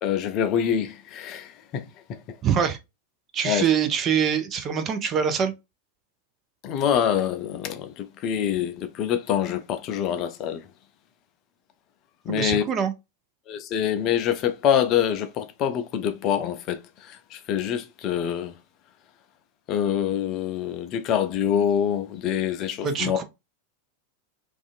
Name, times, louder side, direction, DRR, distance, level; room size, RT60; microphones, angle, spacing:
voice 1, 0.0-2.4 3.4-3.6 6.6-10.7 12.3-12.6 13.5-18.5 19.7-23.2, left 9 dB, 35° left, 0.4 m, -25 dB
voice 2, 2.4-2.8 3.3-5.5 12.3-12.9 22.8-23.2, right 7 dB, 30° right, 0.5 m, -24 dB
2.5 x 2.4 x 2.4 m
figure-of-eight pair, 90°, 0 cm